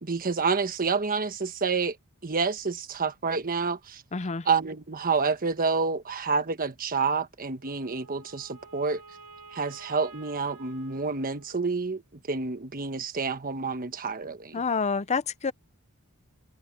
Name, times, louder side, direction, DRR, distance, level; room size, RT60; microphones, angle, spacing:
voice 1, 0.0-2.0 2.2-4.0 4.4-9.0 9.5-12.0 12.3-14.6, right 4 dB, 40° right, 1.3 m, -28 dB
voice 2, 4.1-4.5 14.5-15.5, left 5 dB, 30° left, 0.6 m, -28 dB
Wind instrument woodwind instrument, 7.6-12.0, right 4 dB, 75° right, 3.1 m, -51 dB
head